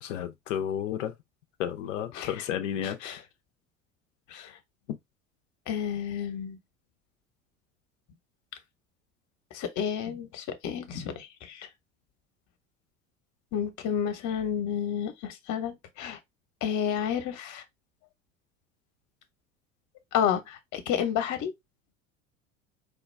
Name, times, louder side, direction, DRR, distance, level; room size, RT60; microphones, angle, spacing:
voice 1, 0.0-1.1 1.6-3.0, left 10 dB, 75° left, 0.7 m, -32 dB
voice 2, 2.1-2.4 2.8-3.2 4.3-4.5 5.7-6.6 9.5-11.7 13.5-16.2 16.6-17.6 20.1-21.5, left 8 dB, 50° left, 1.0 m, -31 dB
4.9 x 2.3 x 3.2 m
hypercardioid pair, 75°, 37 cm